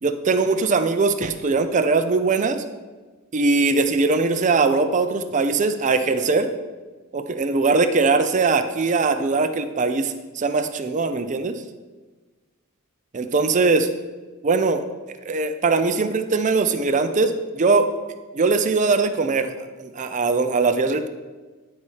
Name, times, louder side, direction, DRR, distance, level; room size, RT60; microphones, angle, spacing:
voice 1, 0.0-2.6 3.3-6.5 7.1-11.6 13.1-13.9 14.4-14.8 15.3-17.9 18.3-19.5 19.8-21.1, right 3 dB, 35° right, 8 dB, 0.5 m, -21 dB
9.9 x 4.1 x 4.8 m, 1.3 s
head